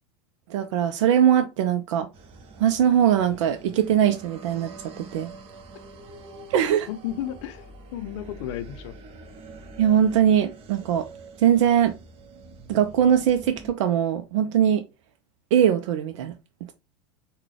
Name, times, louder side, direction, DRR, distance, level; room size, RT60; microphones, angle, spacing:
voice 1, 0.5-2.1 2.6-5.3 6.5-6.9 9.8-11.1 11.4-11.9 12.7-14.8 15.5-16.3, right 9 dB, 75° right, 0.5 m, -21 dB
sound 1, 2.1-13.7, right 3 dB, 40° right, 0.9 m, -45 dB
voice 2, 6.9-9.0, left 11 dB, 70° left, 0.6 m, -33 dB
3.7 x 2.2 x 3.2 m
hypercardioid pair, 105°, 16 cm